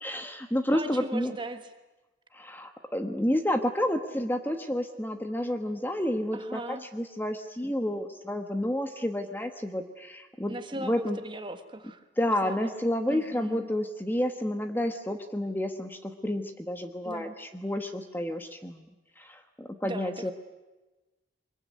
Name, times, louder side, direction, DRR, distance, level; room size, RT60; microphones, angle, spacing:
voice 1, 0.0-1.3 2.3-11.2 12.2-18.9 19.2-20.3, left 1 dB, 10° left, 7 dB, 1.2 m, -30 dB
voice 2, 0.7-1.6 6.3-6.8 10.5-12.7 13.1-13.7 17.0-17.3 19.8-20.3, right 1 dB, 25° right, 8 dB, 1.6 m, -39 dB
23.5 x 22.0 x 9.4 m, 1.1 s
head